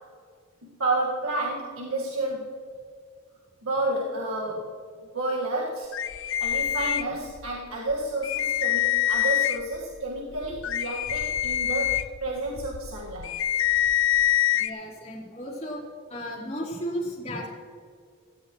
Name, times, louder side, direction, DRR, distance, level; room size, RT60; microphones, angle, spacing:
voice 1, 0.6-2.6 3.6-4.8 5.1-5.9 6.4-13.4, right 2 dB, 75° right, -3 dB, 1.7 m, -30 dB
sound 1, 5.9-7.5 7.9-8.0 8.2-9.8 10.3-14.7, left 11 dB, 65° left, 0.5 m, -25 dB
voice 2, 14.5-15.8 16.1-17.5, equal, 30° left, -6 dB, 3.8 m, -34 dB
17.0 x 15.0 x 3.1 m, 2.1 s
head